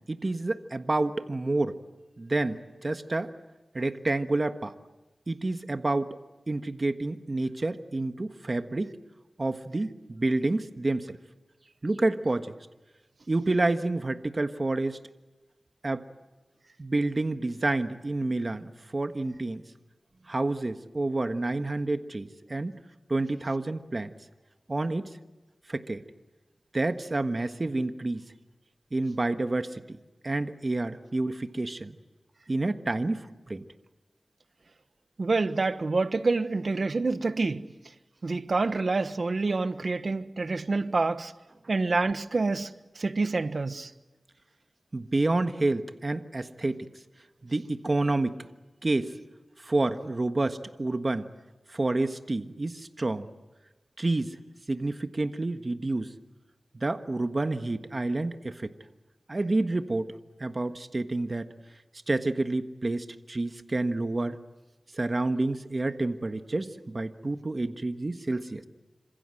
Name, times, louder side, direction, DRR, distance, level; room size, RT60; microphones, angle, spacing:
voice 1, 0.0-1.8 2.2-3.3 3.7-4.7 5.3-6.2 6.5-8.9 9.4-11.2 11.8-12.5 13.3-15.0 15.8-16.1 16.8-19.6 20.3-22.8 23.1-24.1 24.7-25.1 25.7-26.0 26.7-28.2 28.9-30.0 30.2-32.0 32.5-33.6 44.9-46.9 47.4-48.5 48.8-49.1 49.6-51.3 51.7-53.3 54.0-54.4 54.7-56.1 56.7-58.7 59.3-60.1 60.4-61.5 62.1-64.4 64.9-68.6, right 2 dB, 45° right, 1.4 m, -29 dB
voice 2, 35.2-37.7 38.2-41.3 41.7-43.9, right 3 dB, 70° right, 1.2 m, -27 dB
27.5 x 26.0 x 7.8 m
wide cardioid pair, 55°, 0 cm